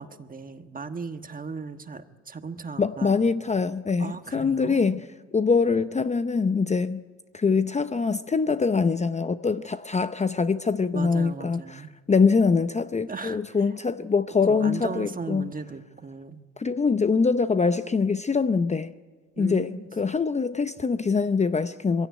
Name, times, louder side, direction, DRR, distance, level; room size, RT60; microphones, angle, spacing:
voice 1, 0.0-3.1 4.0-5.0 10.9-11.9 13.1-13.4 14.5-16.4 19.4-19.9, right 4 dB, 30° right, 1.4 m, -37 dB
voice 2, 2.8-5.0 5.3-7.0 7.3-15.5 16.6-18.9 19.4-22.1, left 5 dB, 25° left, 0.6 m, -24 dB
22.5 x 16.5 x 9.4 m
cardioid pair, 90°, 30 cm